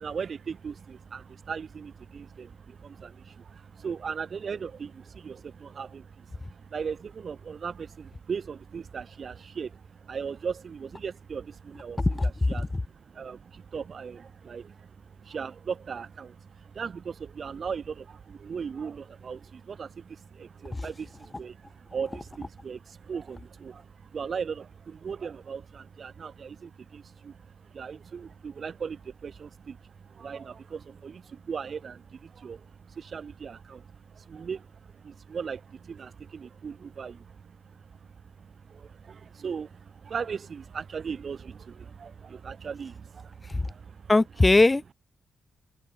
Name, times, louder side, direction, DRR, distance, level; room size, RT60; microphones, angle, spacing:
voice 1, 0.0-44.1, right 6 dB, 50° right, 5.5 m, -38 dB
voice 2, 12.0-12.3 20.7-20.9 43.5-43.7 44.1-44.9, left 2 dB, 20° left, 2.9 m, -21 dB
open air
cardioid pair, 80°, 0 cm